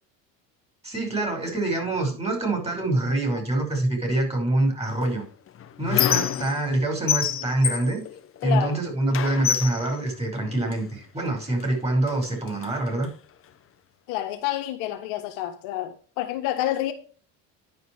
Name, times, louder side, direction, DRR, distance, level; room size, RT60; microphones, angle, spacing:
voice 1, 0.8-5.2 5.8-8.0 8.4-13.1, right 2 dB, 15° right, 5.5 m, -25 dB
Squeak, 5.0-6.8 7.1-8.7 9.1-10.8 11.6-11.7 12.1-13.1, left 9 dB, 35° left, 1.0 m, -28 dB
voice 2, 8.4-8.8 14.1-16.9, left 13 dB, 80° left, 1.6 m, -28 dB
11.0 x 5.2 x 4.8 m
supercardioid pair, 105°, 36 cm